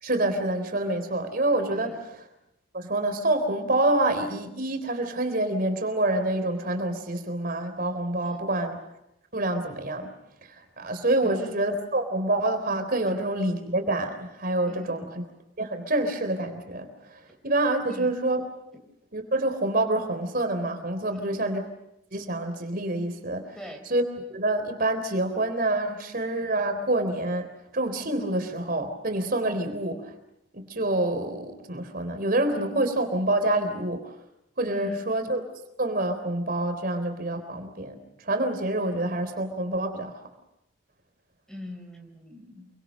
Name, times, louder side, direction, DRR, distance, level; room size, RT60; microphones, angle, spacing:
voice 1, 0.0-2.1 2.7-8.8 9.3-10.1 10.5-15.1 15.6-16.9 17.4-18.5 19.1-21.6 22.1-23.5 23.9-24.0 24.3-27.5 27.7-30.1 30.5-34.0 34.6-35.4 35.8-40.1, right 1 dB, 50° right, 6 dB, 3.8 m, -27 dB
voice 2, 1.7-2.0 8.2-8.5 10.8-10.9 11.2-11.5 14.7-15.0 17.9-18.2 21.1-21.4 23.5-23.9 34.7-35.0 41.5-42.7, left 1 dB, 5° left, 4 dB, 4.0 m, -42 dB
28.5 x 24.0 x 6.6 m, 0.87 s
head